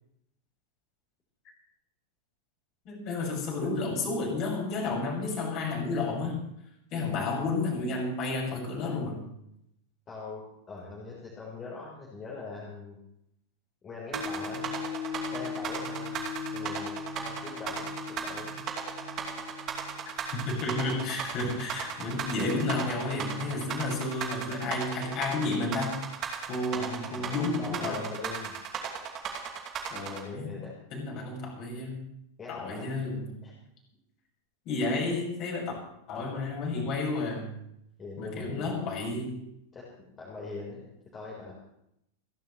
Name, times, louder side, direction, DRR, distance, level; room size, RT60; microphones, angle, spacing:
voice 1, 2.8-6.4 6.9-9.2 20.5-26.0 26.5-28.1 29.9-30.6 30.9-32.0 32.5-33.3 34.6-35.7 36.1-37.5 38.2-39.4, left 3 dB, 40° left, -2 dB, 6.4 m, -31 dB
voice 2, 10.1-13.0 13.8-14.7 15.3-16.3 16.5-18.7 26.7-28.6 30.2-30.7 32.4-32.9 33.4-33.5 38.0-38.7 39.7-40.8 41.1-41.5, left 4 dB, 25° left, -4 dB, 4.2 m, -42 dB
sound 1, 14.1-30.2, right 8 dB, 35° right, 2.6 m, -35 dB
sound 2, 14.1-22.5 23.0-23.1, left 5 dB, 70° right, 2.0 m, -40 dB
28.5 x 11.5 x 3.2 m, 0.77 s
figure-of-eight pair, 90°, 0 cm